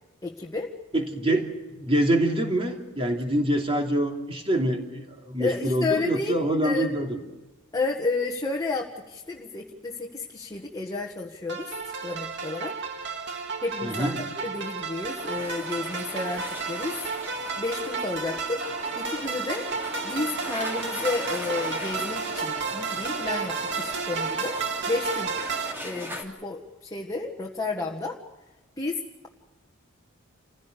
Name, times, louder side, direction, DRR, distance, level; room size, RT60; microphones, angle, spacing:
voice 1, 0.2-0.7 5.4-6.9 7.7-12.8 13.6-14.1 14.4-17.0 17.6-18.6 18.9-19.7 20.0-24.6 24.9-25.3 25.8-28.2 28.8-29.3, left 3 dB, 15° left, 0 dB, 1.6 m, -31 dB
voice 2, 0.9-7.2 13.8-14.2, right 1 dB, 25° right, 2 dB, 3.1 m, -25 dB
sound 1, 11.5-25.7, right 5 dB, 55° right, 2.2 m, -32 dB
sound 2, 15.2-26.2, equal, 10° right, 3.1 m, -39 dB
28.5 x 16.0 x 6.8 m, 1.1 s
head